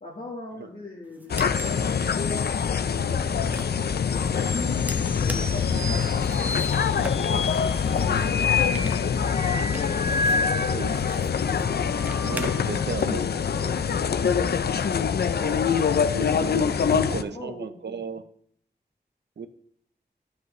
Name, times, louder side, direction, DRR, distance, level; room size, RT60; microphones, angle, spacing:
voice 1, 0.0-3.4 4.0-6.6 6.9-7.4 7.8-9.3 9.7-11.1 11.4-11.6 13.5-14.4 15.3-15.6 16.2-17.7, left 2 dB, 55° left, -2 dB, 1.5 m, -40 dB
sound 1, 1.0-13.0, right 1 dB, 10° right, 0.9 m, -44 dB
sound 2, 1.3-17.2, left 7 dB, 70° left, 0.4 m, -25 dB
sound 3, 1.5-11.1 11.6-12.9 14.7-15.9, left 3 dB, 35° right, 3.0 m, -33 dB
voice 2, 10.6-11.0 12.3-13.3 14.3-14.4 16.1-18.2 19.4-19.5, right 5 dB, 85° right, 10 dB, 0.7 m, -35 dB
12.5 x 8.0 x 3.2 m, 0.64 s
wide cardioid pair, 100°, 18 cm